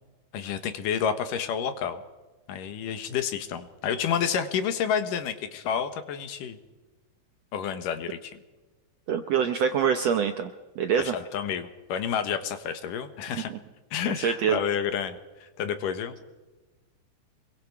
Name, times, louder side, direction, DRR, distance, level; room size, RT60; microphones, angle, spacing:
voice 1, 0.3-2.0 2.5-6.6 7.5-8.3 11.0-13.5 13.9-16.2, left 8 dB, 70° left, 9 dB, 2.7 m, -30 dB
voice 2, 9.1-10.5 10.8-11.1 13.3-13.6 14.1-14.6, right 7 dB, 70° right, 7 dB, 1.6 m, -25 dB
26.0 x 22.5 x 4.8 m, 1.2 s
omnidirectional pair, 4.1 m